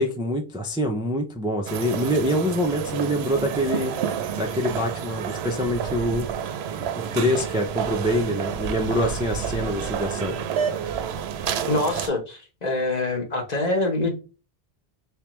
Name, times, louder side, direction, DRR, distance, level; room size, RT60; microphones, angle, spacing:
voice 1, 0.0-3.9 4.4-6.3 7.1-10.4, equal, 10° right, 0.3 m, -25 dB
sound 1, 1.7-12.1, right 8 dB, 80° right, 0.8 m, -29 dB
voice 2, 11.7-14.1, left 2 dB, 40° left, 1.1 m, -25 dB
3.6 x 3.3 x 3.0 m
omnidirectional pair, 1.1 m